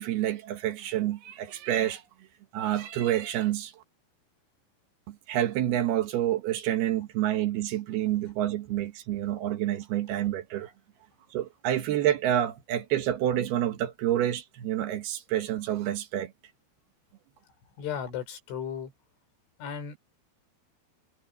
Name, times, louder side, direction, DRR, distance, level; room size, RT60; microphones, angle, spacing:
voice 1, 0.0-2.0 2.5-3.8 5.1-10.7 11.3-16.3, right 12 dB, 65° right, 2.9 m, -28 dB
voice 2, 17.8-18.9 19.6-20.0, left 8 dB, 75° left, 6.8 m, -35 dB
omnidirectional pair, 5.5 m